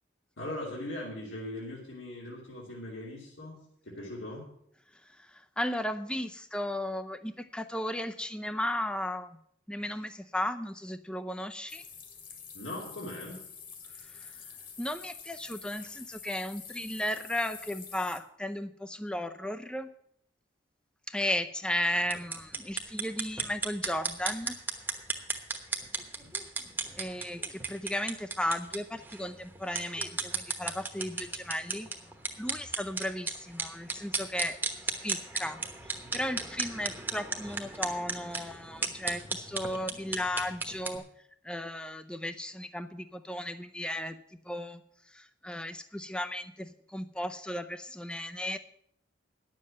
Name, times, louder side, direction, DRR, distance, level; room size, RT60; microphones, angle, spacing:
voice 1, 0.4-4.4 12.5-13.4 26.2-26.3, left 1 dB, 90° left, -4 dB, 2.8 m, -40 dB
voice 2, 5.1-9.4 9.7-11.8 14.1-14.3 14.8-19.9 21.1-24.6 27.0-31.9 32.4-34.6 34.8-41.0 41.4-44.2 44.4-44.8 45.1-48.6, left 1 dB, 5° left, 9 dB, 0.5 m, -35 dB
sound 1, 11.7-18.2, left 6 dB, 45° left, 1.8 m, -47 dB
sound 2, 22.0-41.0, right 3 dB, 10° right, 1.0 m, -36 dB
10.5 x 7.5 x 7.6 m, 0.71 s
head